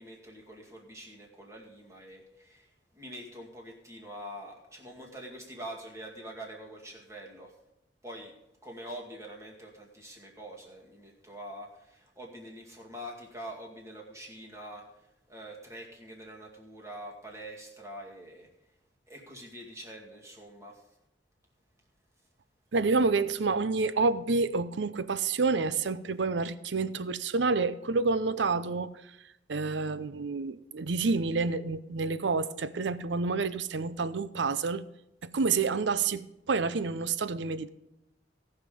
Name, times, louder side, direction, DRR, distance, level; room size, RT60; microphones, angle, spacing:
voice 1, 0.0-7.6 8.0-8.3 8.6-18.5 19.1-20.9, right 1 dB, 15° right, -1 dB, 2.2 m, -45 dB
voice 2, 22.7-28.9 29.5-34.8 35.2-37.7, right 4 dB, 85° right, 15 dB, 0.6 m, -28 dB
17.5 x 5.9 x 5.1 m, 0.87 s
head